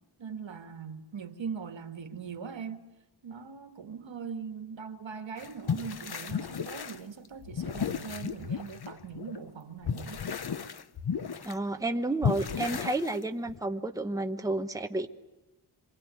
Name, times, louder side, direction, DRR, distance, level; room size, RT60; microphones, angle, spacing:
voice 1, 0.2-2.8 3.2-10.2, right 6 dB, 80° right, 2.1 m, -41 dB
sound 1, 5.4-9.5 9.8-11.5 12.2-13.6, left 7 dB, 55° left, 1.0 m, -34 dB
voice 2, 11.4-15.1, right 2 dB, 10° right, 1.1 m, -31 dB
26.0 x 24.0 x 9.3 m
wide cardioid pair, 135°, 45 cm